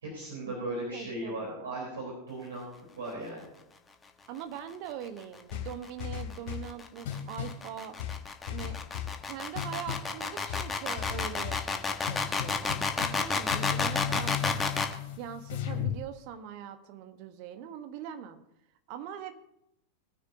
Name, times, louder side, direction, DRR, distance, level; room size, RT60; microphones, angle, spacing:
voice 1, 0.0-2.7 3.0-3.5, right 2 dB, 65° right, -3 dB, 4.2 m, -37 dB
voice 2, 0.9-1.6 4.3-8.0 8.4-8.8 9.3-14.6 15.2-18.4 18.9-19.3, right 9 dB, 45° right, 8 dB, 1.3 m, -42 dB
sound 1, 5.5-6.7 7.0-7.6 8.0-9.2 9.5-10.1 10.5-11.7 12.1-16.0, left 9 dB, 50° left, 2.7 m, -35 dB
sound 2, 5.7-15.0, left 4 dB, 15° left, 1.3 m, -31 dB
21.5 x 9.8 x 2.9 m, 0.82 s
figure-of-eight pair, 90°, 0 cm